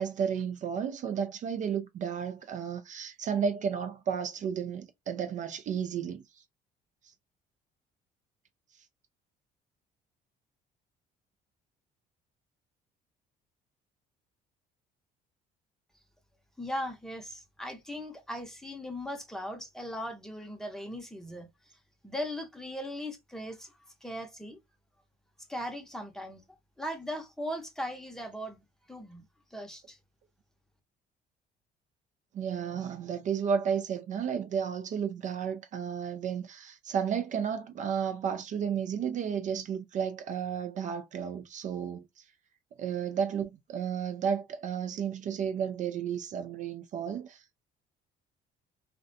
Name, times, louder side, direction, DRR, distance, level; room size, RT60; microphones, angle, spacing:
voice 1, 0.0-6.4 32.3-42.3 42.8-47.4, right 7 dB, 45° right, 0.4 m, -32 dB
voice 2, 16.6-21.5 22.0-23.7 24.0-24.6 25.5-26.4 26.8-28.6 28.9-29.2 29.5-30.0, equal, 5° left, 0.7 m, -38 dB
2.4 x 2.1 x 2.5 m
cardioid pair, 110°, 17 cm